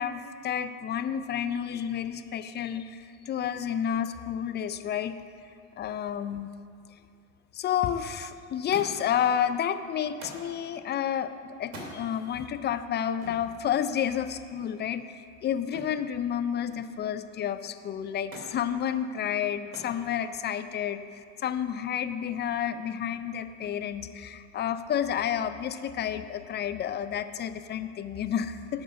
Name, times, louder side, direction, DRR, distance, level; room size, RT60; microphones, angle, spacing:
voice 1, 0.0-5.1 5.8-6.5 7.5-28.8, left 9 dB, 25° left, 11 dB, 0.5 m, -30 dB
Thump thud, 8.7-9.2 10.2-10.5 11.6-12.0 13.2-13.5 15.7-16.0 16.4-17.0 18.3-18.6 19.7-20.0 20.9-21.4 22.4-22.5, equal, 80° right, 2.6 m, -43 dB
13.5 x 6.1 x 6.0 m, 2.3 s
hypercardioid pair, 80°, 40 cm